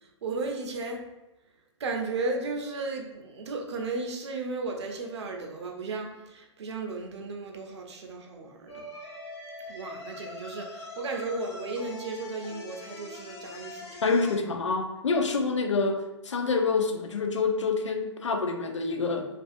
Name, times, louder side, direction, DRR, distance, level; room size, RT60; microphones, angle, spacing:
voice 1, 0.0-1.0 1.8-8.9 9.7-14.0, right 3 dB, 65° right, 2 dB, 0.5 m, -35 dB
sound 1, 8.7-14.4, left 2 dB, 60° left, 0.8 m, -43 dB
voice 2, 14.0-19.3, left 4 dB, 85° left, 5 dB, 0.4 m, -27 dB
2.5 x 2.3 x 2.4 m, 0.99 s
hypercardioid pair, 120°, 15 cm